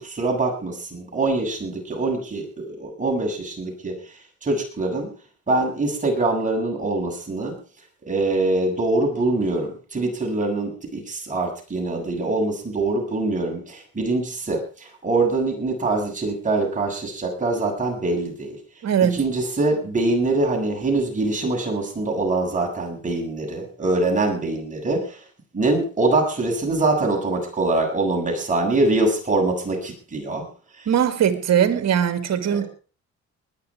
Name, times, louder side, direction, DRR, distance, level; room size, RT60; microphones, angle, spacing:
voice 1, 0.0-4.0 4.4-5.1 5.5-7.5 8.1-18.6 19.0-25.2 25.5-30.5 30.8-30.9 32.5-32.6, right 2 dB, 25° right, 7.5 m, -24 dB
voice 2, 18.8-19.2 30.9-32.7, right 9 dB, 60° right, 2.3 m, -20 dB
21.0 x 10.5 x 4.8 m
cardioid pair, 90°, 30 cm